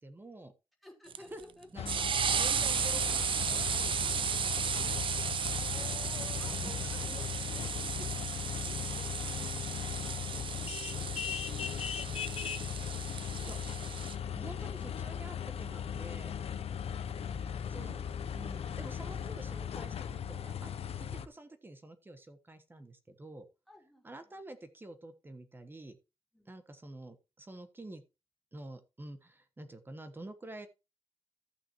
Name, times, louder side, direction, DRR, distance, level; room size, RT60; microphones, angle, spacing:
voice 1, 0.0-0.5 1.3-1.4 1.7-2.0 2.3-5.0 6.4-7.2 13.4-13.6 14.3-16.4 17.7-20.7 21.0-23.5 24.0-26.0 26.4-28.0 28.5-30.7, right 1 dB, 20° right, 9 dB, 1.2 m, -49 dB
voice 2, 0.8-1.9 5.5-7.4 8.2-12.3 12.7-13.4 17.1-17.6 17.9-18.3 23.7-24.4 26.3-26.5, left 1 dB, ahead, -1 dB, 3.1 m, -56 dB
sound 1, 1.1-14.2, right 7 dB, 60° right, 0.5 m, -35 dB
sound 2, 1.8-21.3, left 8 dB, 80° left, 0.6 m, -38 dB
14.5 x 6.1 x 3.0 m, 0.27 s
wide cardioid pair, 155°, 10 cm